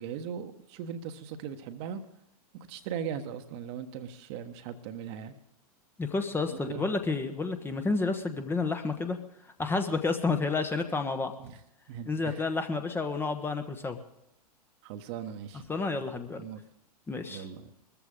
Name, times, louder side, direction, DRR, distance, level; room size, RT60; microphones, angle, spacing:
voice 1, 0.0-2.0 2.5-5.3 6.5-6.9 11.4-11.6 11.9-12.5 14.8-15.6 16.4-16.6 17.3-17.7, right 8 dB, 40° right, 8 dB, 1.3 m, -39 dB
voice 2, 6.0-9.2 9.4-11.3 12.1-14.0 15.7-16.4 17.1-17.5, left 3 dB, 10° left, 7 dB, 1.1 m, -30 dB
21.5 x 14.0 x 3.8 m, 0.84 s
figure-of-eight pair, 100°, 20 cm